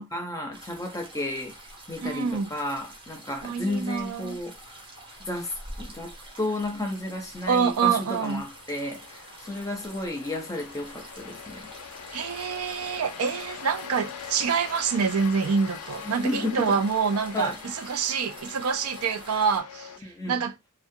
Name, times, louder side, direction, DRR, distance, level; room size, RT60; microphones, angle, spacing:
voice 1, 0.0-4.8 5.2-11.7 16.0-16.8 17.3-17.6 20.0-20.4, left 1 dB, 15° left, 0.6 m, -33 dB
sound 1, 0.5-19.6, right 1 dB, 25° right, 0.8 m, -47 dB
sound 2, 1.7-20.0, left 7 dB, 80° left, 0.4 m, -44 dB
voice 2, 2.0-2.5 3.4-4.4 7.5-8.4 12.1-19.9 20.3-20.5, right 6 dB, 80° right, 0.4 m, -26 dB
2.4 x 2.2 x 2.6 m
head